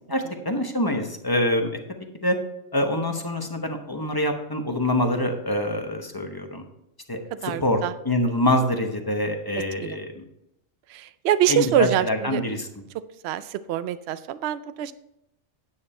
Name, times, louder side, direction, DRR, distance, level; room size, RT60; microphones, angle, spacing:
voice 1, 0.1-1.7 2.2-2.4 2.7-6.6 7.1-7.8 8.0-10.2 11.5-12.7, left 1 dB, 20° left, 4 dB, 1.0 m, -25 dB
voice 2, 7.4-7.9 9.8-10.0 10.9-12.4 13.2-14.9, right 11 dB, 65° right, 14 dB, 0.8 m, -25 dB
9.8 x 7.1 x 4.3 m, 0.83 s
omnidirectional pair, 1.3 m